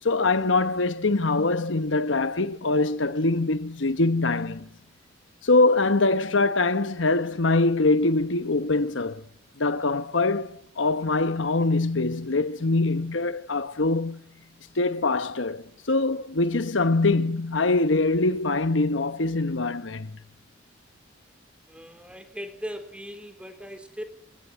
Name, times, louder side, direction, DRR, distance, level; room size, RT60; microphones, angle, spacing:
voice 1, 0.0-4.7 5.4-9.2 9.6-14.2 14.8-20.2, left 3 dB, 75° left, 1.2 m, -23 dB
voice 2, 21.7-24.0, equal, 5° right, 4.0 m, -39 dB
29.0 x 17.0 x 9.8 m
head